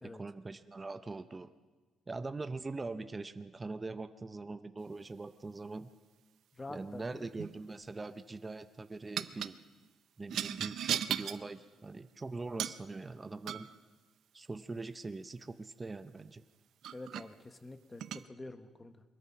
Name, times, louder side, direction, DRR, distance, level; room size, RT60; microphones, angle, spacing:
voice 1, 0.0-1.5 2.1-5.9 6.7-9.6 10.2-13.7 14.3-16.5, right 3 dB, 15° right, 10 dB, 0.6 m, -42 dB
voice 2, 6.5-7.3 16.9-19.0, left 2 dB, 15° left, 9 dB, 1.1 m, -47 dB
sound 1, 7.2-7.6 9.2-9.5 10.3-11.4 12.6-12.8 13.5-13.8 16.2-16.3 16.8-17.3 18.0-18.2, right 10 dB, 60° right, 0.6 m, -36 dB
23.0 x 21.0 x 5.8 m, 1.3 s
cardioid pair, 155°, 0 cm